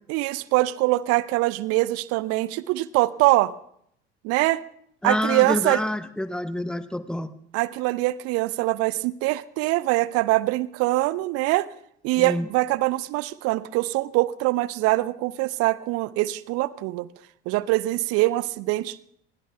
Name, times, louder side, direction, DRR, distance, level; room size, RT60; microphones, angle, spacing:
voice 1, 0.1-3.5 4.2-4.6 5.0-5.8 7.5-11.7 12.0-17.1 17.5-19.0, right 19 dB, 45° right, 20 dB, 0.6 m, -23 dB
voice 2, 5.0-7.3 12.2-12.5, left 1 dB, ahead, 14 dB, 0.7 m, -27 dB
29.5 x 21.0 x 2.3 m, 0.70 s
figure-of-eight pair, 65°, 34 cm